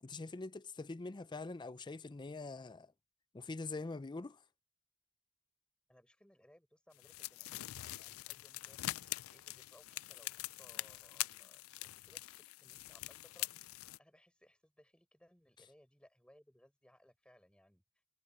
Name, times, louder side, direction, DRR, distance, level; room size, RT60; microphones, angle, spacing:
voice 1, 0.0-2.9 3.3-4.4, left 3 dB, 20° left, 0.5 m, -44 dB
voice 2, 5.9-8.9 9.3-13.5 14.0-17.8, equal, 5° left, 4.6 m, -66 dB
sound 1, 7.0-14.0, left 16 dB, 90° left, 0.4 m, -44 dB
head